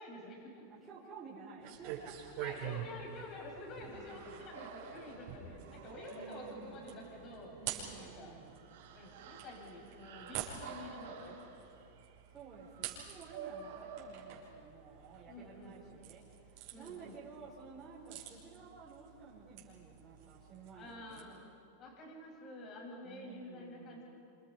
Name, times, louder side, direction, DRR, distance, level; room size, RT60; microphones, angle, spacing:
voice 1, 0.0-0.6 2.4-7.5 7.9-8.4 8.9-11.3 15.3-15.8 16.7-17.2 20.8-21.5 21.8-24.0, left 2 dB, 35° left, -1 dB, 7.5 m, -49 dB
voice 2, 0.7-2.5 3.8-4.4 6.1-7.0 7.6-8.6 12.3-21.3 23.0-24.0, right 5 dB, 25° right, -7 dB, 4.9 m, -53 dB
sound 1, 1.6-21.2, right 10 dB, 55° right, 6.0 m, -48 dB
sound 2, 3.9-14.9, right 6 dB, 80° right, 4.0 m, -51 dB
28.0 x 27.5 x 5.7 m, 2.8 s
supercardioid pair, 130°, 0 cm